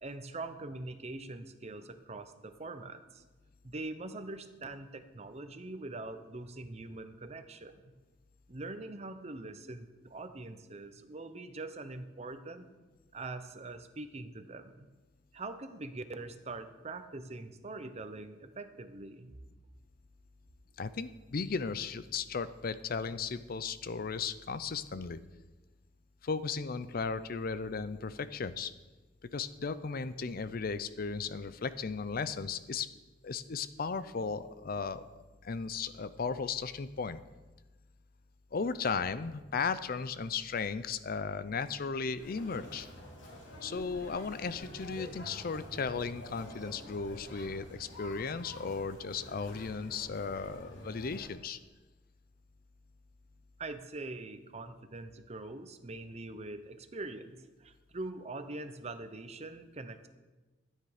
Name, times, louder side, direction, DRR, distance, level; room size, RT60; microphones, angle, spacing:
voice 1, 0.0-3.2 3.6-7.9 8.5-12.8 13.1-14.9 15.3-19.3 53.6-60.1, right 2 dB, 35° right, 9 dB, 0.8 m, -43 dB
voice 2, 20.8-25.2 26.2-28.7 29.3-32.9 33.2-37.2 38.5-42.9 43.6-51.6, left 5 dB, 50° left, 14 dB, 0.5 m, -36 dB
Conversation, 42.2-51.3, equal, 80° left, 3.2 m, -48 dB
13.0 x 9.4 x 5.0 m, 1.2 s
head